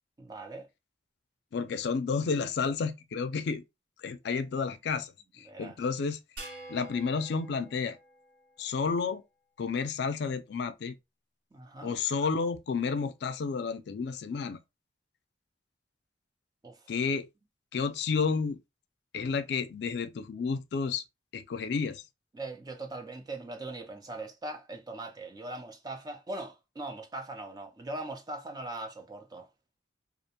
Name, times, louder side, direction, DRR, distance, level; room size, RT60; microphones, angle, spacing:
voice 1, 0.2-0.7 5.5-5.7 11.5-12.0 16.6-16.8 22.3-29.5, right 2 dB, 20° right, 0.4 m, -40 dB
voice 2, 1.5-3.6 4.0-6.2 6.7-8.0 8.6-9.2 9.6-10.9 11.8-14.6 16.9-17.3 17.7-18.6 19.1-21.0 21.3-22.0, left 5 dB, 60° left, 0.4 m, -31 dB
sound 1, 6.4-8.9, right 2 dB, 60° right, 1.1 m, -48 dB
2.4 x 2.1 x 2.8 m
head